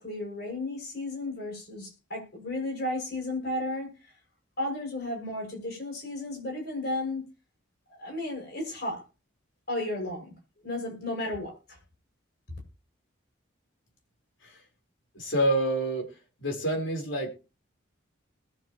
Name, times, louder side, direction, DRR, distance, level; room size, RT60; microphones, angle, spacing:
voice 1, 0.0-3.9 4.6-7.2 8.0-9.0 9.7-10.3 10.6-11.8, left 1 dB, 50° left, 6.7 m, -33 dB
voice 2, 15.1-16.1 16.4-17.3, right 1 dB, 70° left, 4.4 m, -27 dB
20.5 x 7.7 x 3.1 m
head